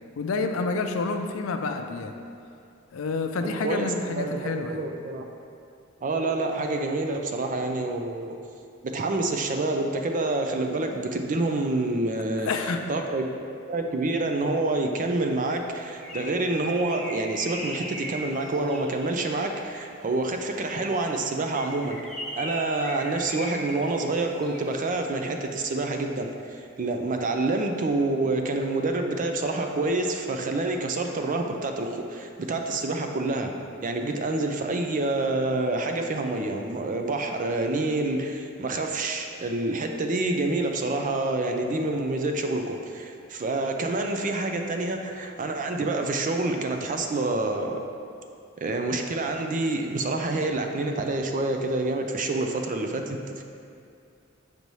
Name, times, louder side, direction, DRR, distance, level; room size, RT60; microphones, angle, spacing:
voice 1, 0.2-2.1 2.9-4.8 12.4-12.8, left 3 dB, 75° left, 5 dB, 0.5 m, -28 dB
voice 2, 3.4-5.3 6.0-8.3 8.8-12.5 12.9-13.4 13.7-22.0 22.4-33.5 33.8-47.8 48.6-53.4, right 2 dB, 40° right, 4 dB, 0.4 m, -27 dB
Bird, 15.6-19.7 21.3-24.9, right 1 dB, 5° left, 0.9 m, -38 dB
6.6 x 5.3 x 3.1 m, 2.4 s
head